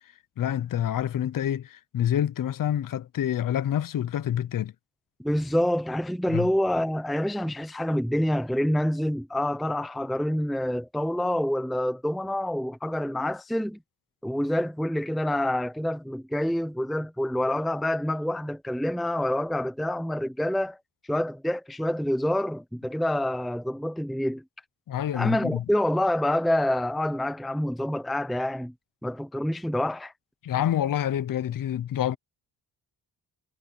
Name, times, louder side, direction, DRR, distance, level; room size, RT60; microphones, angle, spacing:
voice 1, 0.4-4.7 6.3-6.5 24.9-25.6 30.4-32.2, left 10 dB, 50° left, 0.7 m, -27 dB
voice 2, 5.2-13.8 14.2-20.8 21.1-24.4 25.1-28.7 29.0-30.1, left 1 dB, ahead, 0.7 m, -27 dB
wide cardioid pair, 165°, 41 cm